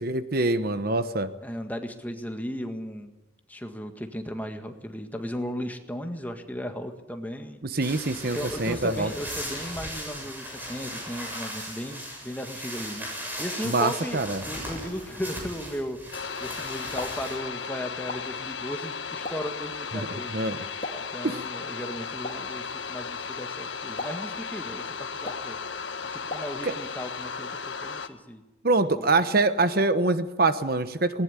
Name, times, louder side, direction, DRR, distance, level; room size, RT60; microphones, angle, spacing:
voice 1, 0.0-1.3 7.6-9.1 13.6-14.4 19.9-20.1 20.3-20.6 21.2-21.4 26.6-26.7 28.6-31.2, right 2 dB, 50° right, 11 dB, 1.1 m, -24 dB
voice 2, 1.4-3.1 3.5-7.6 8.3-16.0 16.4-20.4 21.0-25.6 26.1-28.4 28.8-29.1, equal, 10° left, 5 dB, 1.8 m, -36 dB
sound 1, 7.8-17.4, equal, 10° right, 7.2 m, -37 dB
sound 2, 16.1-28.1, left 5 dB, 70° left, 1.4 m, -35 dB
Explosion, 16.7-27.0, left 2 dB, 45° left, 3.5 m, -43 dB
19.5 x 19.0 x 9.8 m, 1.0 s
head